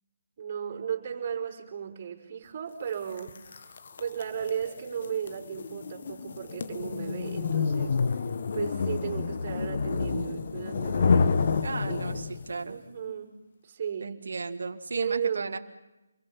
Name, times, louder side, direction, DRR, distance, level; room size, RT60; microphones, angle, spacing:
voice 1, 0.4-11.6 11.8-12.2 12.6-13.3 13.6-14.2 14.9-15.5, right 8 dB, 35° right, 0 dB, 5.2 m, -35 dB
sound 1, 3.2-12.5, left 5 dB, 50° left, 1.4 m, -29 dB
voice 2, 11.6-12.8 14.0-15.6, right 4 dB, 65° right, 5 dB, 1.9 m, -35 dB
28.5 x 23.0 x 5.7 m, 0.99 s
figure-of-eight pair, 155°, 0 cm